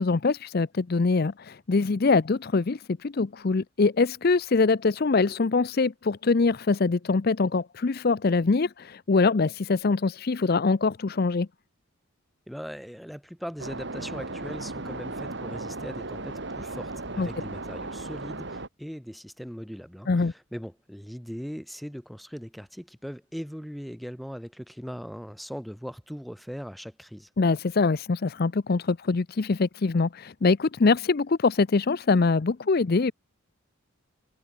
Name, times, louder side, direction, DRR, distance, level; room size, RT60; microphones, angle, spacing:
voice 1, 0.0-11.5 17.2-17.3 20.1-20.3 27.4-33.1, left 4 dB, 45° left, 0.5 m, -23 dB
voice 2, 12.5-27.3, equal, ahead, 4.9 m, -39 dB
sound 1, 13.6-18.7, right 2 dB, 55° right, 1.9 m, -36 dB
head